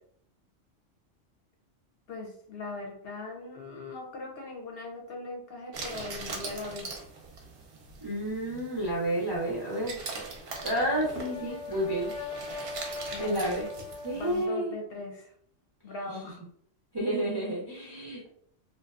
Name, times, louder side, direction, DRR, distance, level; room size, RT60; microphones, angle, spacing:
voice 1, 2.1-6.9 13.1-13.4 14.1-15.3 15.8-16.4, left 2 dB, 60° left, 0 dB, 0.7 m, -40 dB
sound 1, 5.7-14.5, right 3 dB, 60° right, 0.7 m, -42 dB
voice 2, 8.0-10.0 10.6-12.1 12.9-13.7 14.0-14.7 16.1-16.2 16.9-18.3, right 1 dB, 35° right, -5 dB, 0.4 m, -30 dB
Brass instrument, 10.4-14.6, left 4 dB, 90° left, 1.0 m, -40 dB
2.6 x 2.1 x 2.3 m, 0.63 s
omnidirectional pair, 1.3 m